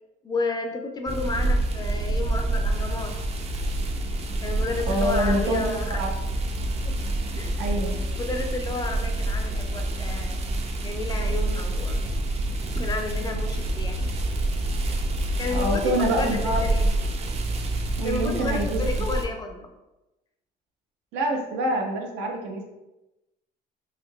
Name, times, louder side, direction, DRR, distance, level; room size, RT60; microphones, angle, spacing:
voice 1, 0.2-3.2 4.4-6.0 6.8-6.9 7.3-7.6 8.2-10.4 10.8-12.0 12.7-14.1 15.4-16.9 18.0-19.7, left 3 dB, 25° left, 4 dB, 0.4 m, -32 dB
sound 1, 1.1-19.2, right 1 dB, 40° right, 0.4 m, -27 dB
voice 2, 4.9-6.1 7.6-8.0 15.5-16.9 18.0-19.2 21.1-22.6, right 1 dB, 90° right, 2 dB, 0.6 m, -26 dB
3.6 x 2.7 x 2.2 m, 0.98 s
cardioid pair, 110°, 17 cm